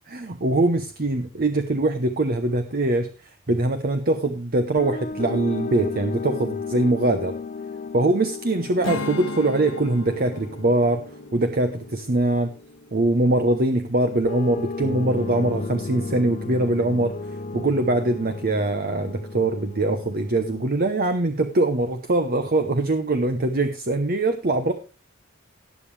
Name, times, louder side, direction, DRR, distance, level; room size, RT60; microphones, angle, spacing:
voice 1, 0.1-7.3 7.9-12.5 12.9-17.1 17.5-24.7, right 2 dB, 50° right, 8 dB, 0.9 m, -23 dB
sound 1, 4.8-12.9 14.2-20.9, left 4 dB, 40° left, 0.5 m, -34 dB
Strum, 8.8-14.2, left 2 dB, 85° left, 1.6 m, -36 dB
18.5 x 7.4 x 3.3 m, 0.31 s
head